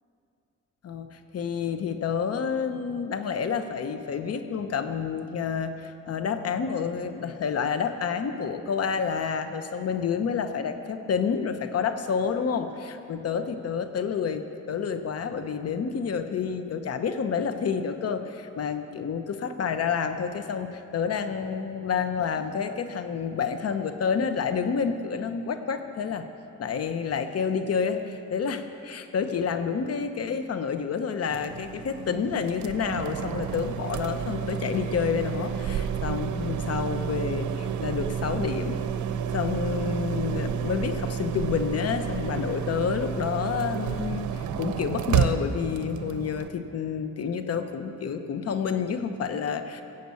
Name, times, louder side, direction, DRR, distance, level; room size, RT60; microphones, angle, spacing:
voice 1, 0.8-26.2 26.6-38.8 39.3-49.8, left 6 dB, 55° left, 9 dB, 1.0 m, -29 dB
sound 1, 31.3-46.5, right 8 dB, 75° right, 0.8 m, -30 dB
16.0 x 7.9 x 7.0 m, 2.7 s
cardioid pair, 90°, 30 cm